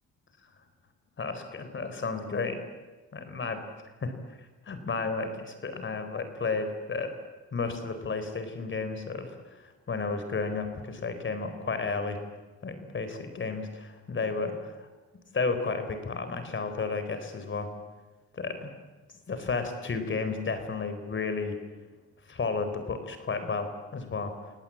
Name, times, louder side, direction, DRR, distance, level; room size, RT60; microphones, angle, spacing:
voice 1, 1.2-2.6 3.1-3.6 4.0-4.1 4.7-7.1 7.5-9.6 9.9-12.2 12.6-14.9 15.3-17.7 18.3-18.7 19.3-21.6 22.3-24.3, left 4 dB, 40° left, 9 dB, 4.3 m, -32 dB
29.5 x 17.5 x 8.9 m, 1.2 s
cardioid pair, 90°, 30 cm